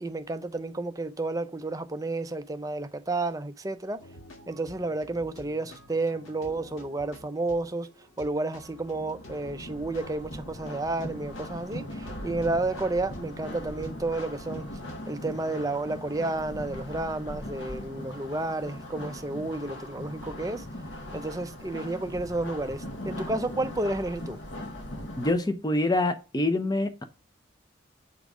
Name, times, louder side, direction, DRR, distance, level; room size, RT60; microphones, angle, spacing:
voice 1, 0.0-4.0 4.5-7.9 8.2-14.7 15.1-20.7 21.1-24.4, right 2 dB, 15° right, 0.5 m, -31 dB
sound 1, 4.0-15.0, equal, 80° left, 1.9 m, -50 dB
sound 2, 8.6-25.3, left 1 dB, 60° left, 1.2 m, -40 dB
voice 2, 25.1-27.0, left 2 dB, 20° left, 0.7 m, -26 dB
8.1 x 3.9 x 4.8 m
head